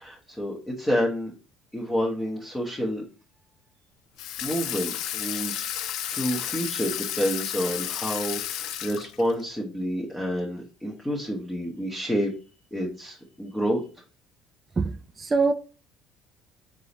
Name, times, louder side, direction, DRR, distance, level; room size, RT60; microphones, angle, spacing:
voice 1, 0.0-1.3 1.7-3.0 4.4-12.3 12.7-13.9, equal, 10° left, 0.9 m, -29 dB
Water tap faucet / Sink (filling or washing), 4.2-9.4, left 11 dB, 70° left, 0.4 m, -32 dB
voice 2, 14.8-15.5, right 4 dB, 25° right, 0.3 m, -24 dB
4.0 x 3.7 x 2.9 m
cardioid pair, 110°, 0 cm